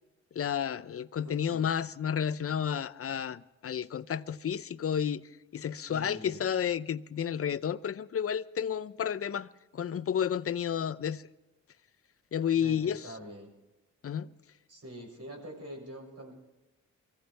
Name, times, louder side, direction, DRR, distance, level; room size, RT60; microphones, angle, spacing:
voice 1, 0.3-11.2 12.3-13.0 14.0-14.3, left 8 dB, 50° left, 0.7 m, -31 dB
voice 2, 1.3-1.7 5.9-6.5 12.6-13.5 14.7-16.3, equal, 55° right, 6.8 m, -45 dB
23.5 x 15.5 x 3.4 m
cardioid pair, 65°, 31 cm